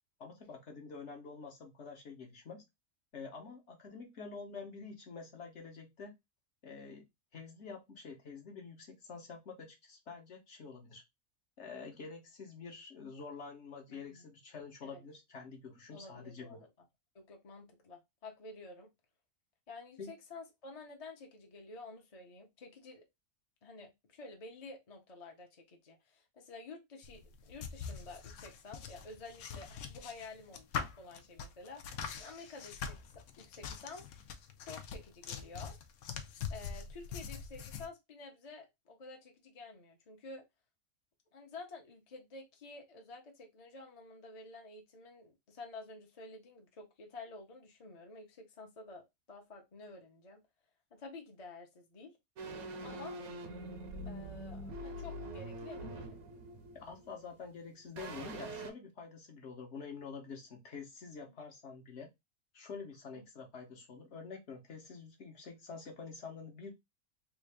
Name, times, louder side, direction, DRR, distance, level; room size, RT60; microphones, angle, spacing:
voice 1, 0.2-2.6 3.1-6.1 6.6-7.0 7.3-11.0 11.6-16.6 20.0-20.1 56.7-62.1 62.5-66.7, left 5 dB, 55° left, 1.1 m, -47 dB
voice 2, 13.9-14.3 14.8-15.0 15.9-16.7 17.1-18.9 19.7-23.1 23.6-34.1 34.6-35.8 36.5-40.4 41.3-49.0 49.3-50.4 50.9-52.2 52.8-53.2 54.1-56.2 61.4-61.5 63.1-63.3, left 3 dB, 35° left, 0.7 m, -50 dB
sound 1, 27.0-37.9, left 6 dB, 80° left, 1.1 m, -43 dB
sound 2, 52.4-57.6 58.0-58.7, right 1 dB, 80° right, 1.2 m, -44 dB
3.6 x 2.4 x 3.3 m
omnidirectional pair, 1.5 m